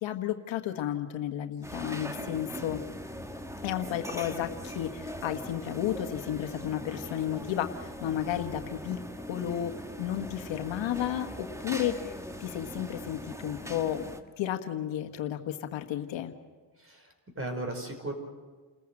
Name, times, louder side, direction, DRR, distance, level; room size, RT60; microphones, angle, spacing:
voice 1, 0.0-2.8 3.6-9.7 10.0-14.0 14.4-16.3, left 11 dB, 70° left, 7 dB, 1.6 m, -33 dB
sound 1, 1.6-14.2, equal, 5° right, 1.5 m, -41 dB
voice 2, 16.8-18.1, right 2 dB, 30° right, 6 dB, 5.2 m, -36 dB
28.5 x 14.5 x 7.7 m, 1.4 s
cardioid pair, 85°, 47 cm